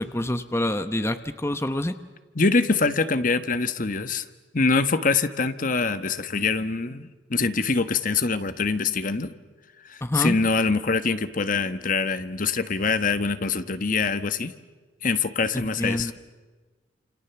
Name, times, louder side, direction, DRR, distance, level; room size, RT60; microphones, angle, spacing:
voice 1, 0.0-1.9 10.0-10.4 15.8-16.1, left 1 dB, 15° left, 10 dB, 1.0 m, -26 dB
voice 2, 2.3-4.2 4.5-9.3 9.9-14.5 15.0-16.1, left 4 dB, 50° left, 11 dB, 1.2 m, -24 dB
29.5 x 28.0 x 7.0 m, 1.3 s
head